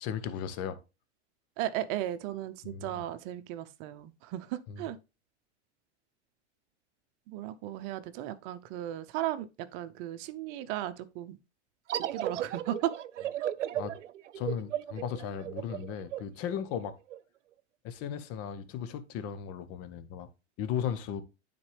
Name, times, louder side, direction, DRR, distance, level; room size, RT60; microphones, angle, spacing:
voice 1, 0.0-0.8 2.6-3.0 4.7-4.9 13.7-14.0 14.3-16.9 17.8-20.3 20.6-21.2, left 8 dB, 40° left, 1.0 m, -36 dB
voice 2, 1.6-5.0 7.3-11.4 12.1-12.9, right 13 dB, 45° right, 0.8 m, -36 dB
sound 1, 11.9-17.2, right 11 dB, 90° right, 0.6 m, -35 dB
9.6 x 4.3 x 3.3 m
hypercardioid pair, 110°, 35 cm